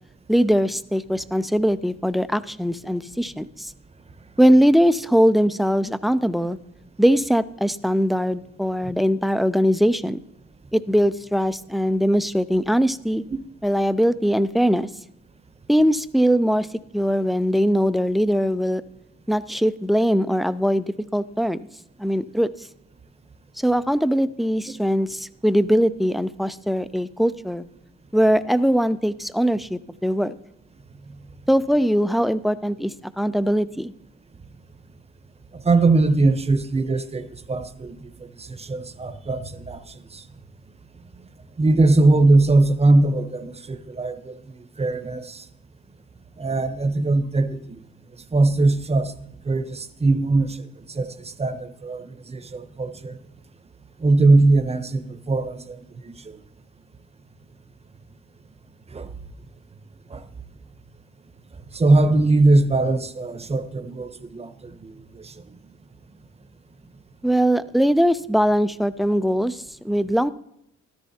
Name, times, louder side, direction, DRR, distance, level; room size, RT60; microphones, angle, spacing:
voice 1, 0.3-3.7 4.4-6.6 7.0-10.2 10.7-13.2 13.6-14.9 15.7-16.7 16.9-18.8 19.3-21.6 22.0-22.5 23.6-27.7 28.1-30.3 31.5-33.9 67.2-70.3, equal, ahead, 0.4 m, -21 dB
voice 2, 35.5-40.3 41.6-45.5 46.4-47.8 48.3-49.1 49.4-53.2 54.0-56.4 58.9-59.1 60.1-60.3 61.7-65.5, right 2 dB, 20° right, 0.8 m, -21 dB
13.5 x 12.5 x 2.8 m
cardioid pair, 90°, 30 cm